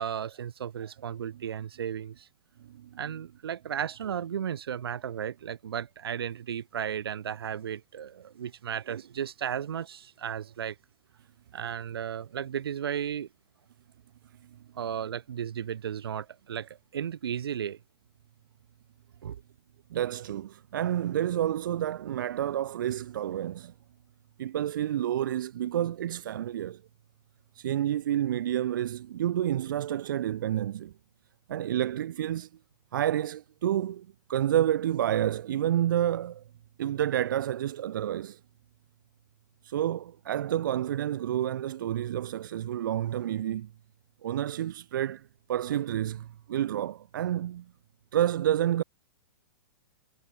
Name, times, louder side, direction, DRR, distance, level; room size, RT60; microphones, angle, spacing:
voice 1, 0.0-2.3 3.0-10.8 11.5-13.3 14.8-17.8 19.2-19.4, right 9 dB, 80° right, 2.8 m, -34 dB
voice 2, 2.7-3.0 19.9-23.7 24.4-26.8 27.5-30.9 31.5-32.5 32.9-36.4 36.8-38.4 39.6-43.7 44.2-47.7 48.1-48.8, right 11 dB, 55° right, 0.9 m, -29 dB
hypercardioid pair, 170°, 12 cm